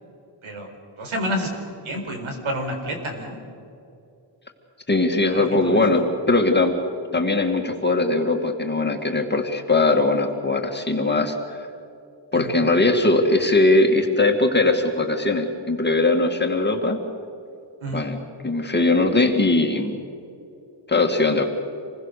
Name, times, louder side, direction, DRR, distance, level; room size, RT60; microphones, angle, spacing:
voice 1, 1.0-1.5 1.8-3.4 5.2-6.0 12.3-12.6 17.8-18.1, equal, 80° right, 3 dB, 4.7 m, -29 dB
voice 2, 4.9-6.8 7.1-11.7 12.3-17.0 17.9-18.2 18.4-20.0 20.9-21.4, left 2 dB, 20° left, 3 dB, 2.1 m, -20 dB
27.5 x 21.5 x 6.6 m, 2.7 s
wide cardioid pair, 150°, 47 cm